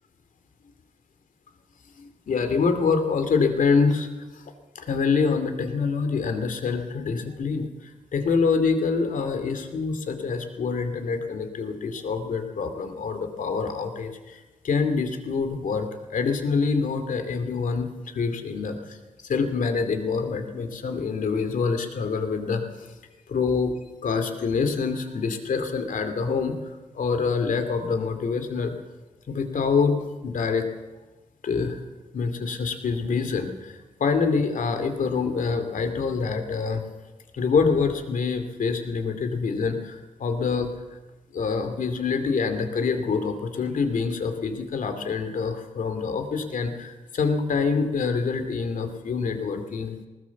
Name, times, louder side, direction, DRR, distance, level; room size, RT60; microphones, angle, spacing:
voice 1, 2.0-4.1 4.7-19.0 19.2-22.9 23.3-23.7 24.0-26.6 26.9-28.7 29.3-30.0 30.2-30.7 31.4-31.8 32.1-36.8 37.3-40.7 41.3-50.0, left 5 dB, 90° left, 7 dB, 2.6 m, -26 dB
20.0 x 19.5 x 7.2 m, 1.2 s
wide cardioid pair, 135°, 13 cm